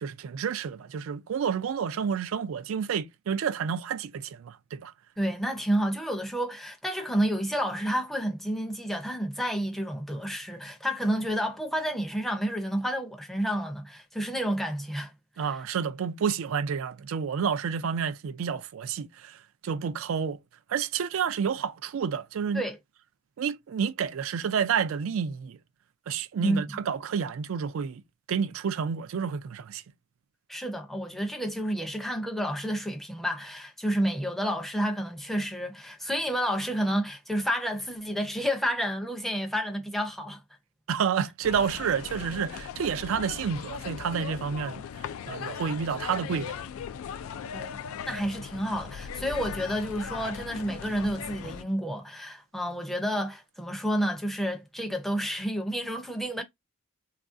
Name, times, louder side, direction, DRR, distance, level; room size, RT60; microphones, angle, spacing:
voice 1, 0.0-4.9 15.4-19.4 19.6-20.4 20.7-22.6 23.4-25.6 26.1-28.0 28.3-29.8 40.9-44.8 45.3-46.6, right 7 dB, 70° right, 0.3 m, -29 dB
voice 2, 5.2-15.1 15.4-15.6 22.5-22.8 26.4-26.7 30.5-40.4 47.5-47.8 48.1-56.4, equal, ahead, 0.5 m, -30 dB
sound 1, 41.4-51.6, left 7 dB, 80° left, 0.3 m, -38 dB
3.1 x 2.4 x 2.5 m
head